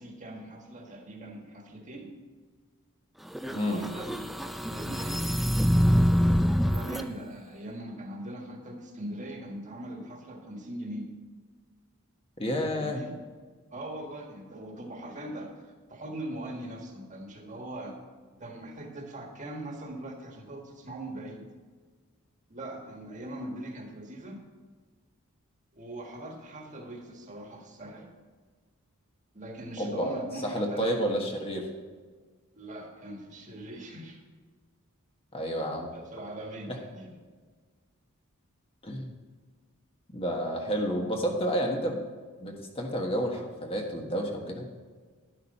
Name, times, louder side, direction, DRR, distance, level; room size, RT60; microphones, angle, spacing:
voice 1, 0.0-2.1 3.5-5.4 6.6-11.1 12.8-13.1 13.7-18.0 18.4-21.5 22.5-24.5 25.7-28.1 29.3-31.2 32.5-34.2 35.9-37.1, right 1 dB, 35° right, 2 dB, 1.6 m, -41 dB
sound 1, 3.3-7.0, equal, ahead, 0.4 m, -25 dB
voice 2, 3.5-3.9 12.4-13.0 29.8-30.2 30.4-31.7 35.3-35.9 36.7-36.8 38.8-39.1 40.1-42.0 42.4-44.6, equal, 25° left, 1 dB, 1.3 m, -30 dB
11.5 x 10.5 x 4.2 m, 1.5 s
head